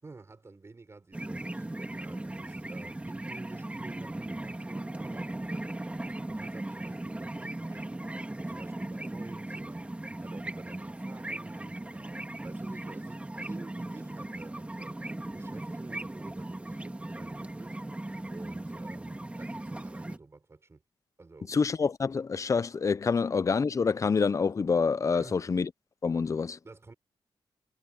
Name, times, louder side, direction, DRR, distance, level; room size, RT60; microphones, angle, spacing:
voice 1, 0.0-5.4 6.1-15.0 15.3-20.8 21.2-21.5 25.1-25.4 26.6-26.9, right 3 dB, 30° right, 5.5 m, -51 dB
sound 1, 1.1-20.2, right 1 dB, 15° right, 3.3 m, -38 dB
voice 2, 21.5-25.7 26.0-26.6, left 5 dB, 35° left, 0.5 m, -27 dB
wide cardioid pair, 120°, 9 cm